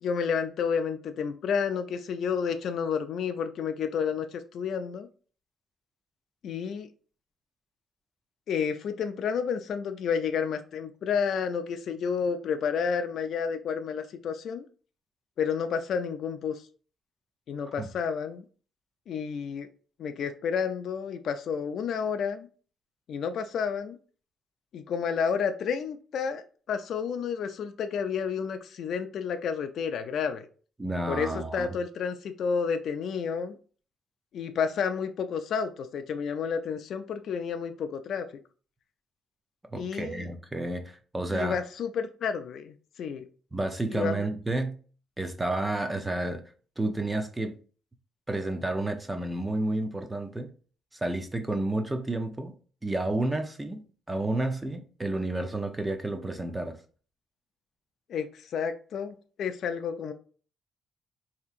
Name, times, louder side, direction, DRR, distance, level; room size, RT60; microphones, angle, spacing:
voice 1, 0.0-5.1 6.4-6.9 8.5-14.7 15.4-16.6 17.5-18.4 19.1-19.7 20.0-22.5 23.1-24.0 24.7-30.5 31.1-33.5 34.3-38.3 39.7-40.3 41.3-43.2 43.9-44.2 58.1-60.1, left 6 dB, 65° left, 0.4 m, -30 dB
voice 2, 30.8-31.8 39.7-41.6 43.5-44.8 45.2-46.4 46.8-47.6 48.3-50.5 50.9-52.5 52.8-56.8, right 2 dB, 15° right, 0.6 m, -31 dB
4.3 x 2.8 x 2.4 m
cardioid pair, 90°, 0 cm